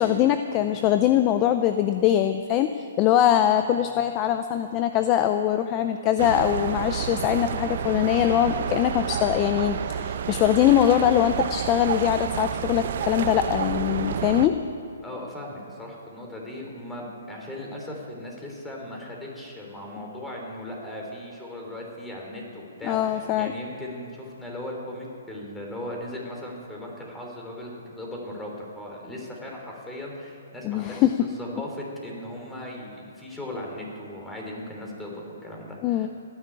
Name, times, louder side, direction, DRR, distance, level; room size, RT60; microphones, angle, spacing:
voice 1, 0.0-14.6 22.8-23.5 30.6-31.3 35.8-36.1, left 11 dB, 25° left, 9 dB, 0.6 m, -22 dB
sound 1, 6.2-14.5, right 8 dB, 55° right, 0.8 m, -30 dB
voice 2, 15.0-36.1, left 1 dB, 5° left, -1 dB, 3.2 m, -38 dB
15.5 x 10.5 x 8.7 m, 2.6 s
hypercardioid pair, 150°, 0 cm